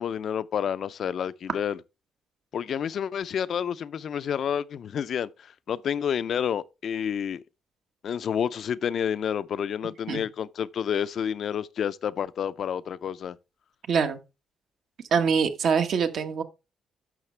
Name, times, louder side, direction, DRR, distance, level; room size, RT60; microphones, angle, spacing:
voice 1, 0.0-1.8 2.5-7.4 8.0-13.4, left 8 dB, 60° left, 0.5 m, -29 dB
voice 2, 13.9-14.2 15.1-16.4, right 6 dB, 65° right, 1.3 m, -24 dB
11.0 x 6.4 x 3.3 m
cardioid pair, 90°, 0 cm